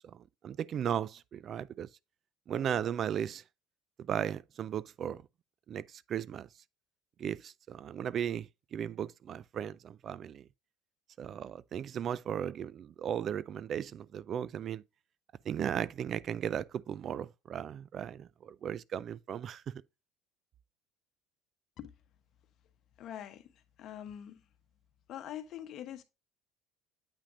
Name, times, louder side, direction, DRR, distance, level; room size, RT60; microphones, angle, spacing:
voice 1, 0.1-1.9 2.5-3.4 4.1-5.2 5.7-6.5 7.2-10.4 11.2-14.8 15.5-19.6, right 9 dB, 45° right, 0.3 m, -36 dB
voice 2, 23.0-24.5 25.1-26.0, left 10 dB, 55° left, 1.0 m, -44 dB
8.4 x 5.8 x 2.5 m
cardioid pair, 110°, 0 cm